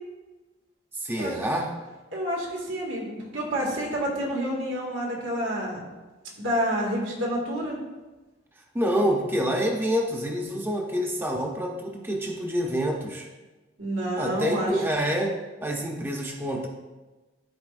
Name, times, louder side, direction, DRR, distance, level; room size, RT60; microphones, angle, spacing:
voice 1, 0.9-1.7 8.7-13.3 14.2-16.7, equal, 10° right, 0 dB, 0.6 m, -27 dB
voice 2, 2.1-5.8 6.4-7.8 13.8-14.7, equal, 90° right, -3 dB, 2.0 m, -28 dB
13.0 x 4.3 x 2.5 m, 1.2 s
head